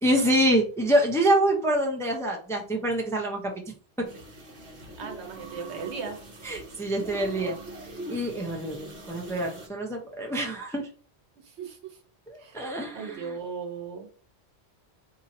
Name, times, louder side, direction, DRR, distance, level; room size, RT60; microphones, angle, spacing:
voice 1, 0.0-3.5 4.0-4.1 6.4-7.6 8.1-10.9 12.3-13.4, right 1 dB, 5° left, 0 dB, 0.5 m, -26 dB
sound 1, 4.0-9.7, right 1 dB, 55° right, 1.3 m, -42 dB
voice 2, 5.0-6.2 11.4-12.0 12.4-14.1, right 5 dB, 90° right, 3 dB, 1.1 m, -37 dB
2.7 x 2.6 x 4.1 m, 0.42 s
omnidirectional pair, 1.1 m